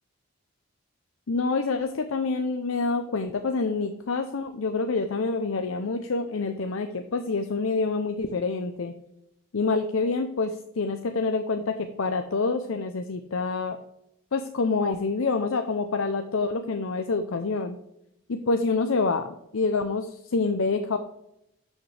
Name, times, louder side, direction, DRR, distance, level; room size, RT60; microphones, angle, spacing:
voice 1, 1.3-8.9 9.5-13.8 14.3-17.7 18.3-21.0, left 4 dB, 80° left, 7 dB, 0.6 m, -27 dB
11.5 x 6.5 x 3.3 m, 0.80 s
head